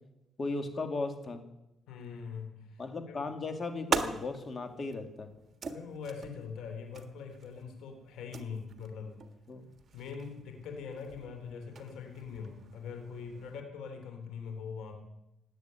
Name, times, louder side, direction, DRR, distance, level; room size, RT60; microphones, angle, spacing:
voice 1, 0.4-1.4 2.8-5.3 9.5-9.6, left 3 dB, 40° left, 7 dB, 2.4 m, -36 dB
voice 2, 1.9-2.8 3.1-3.2 5.6-9.2 9.9-14.9, left 6 dB, 85° left, 4 dB, 3.7 m, -42 dB
sound 1, 3.2-13.6, right 5 dB, 50° right, 1.5 m, -42 dB
18.5 x 8.2 x 9.0 m, 0.89 s
cardioid pair, 90°, 0 cm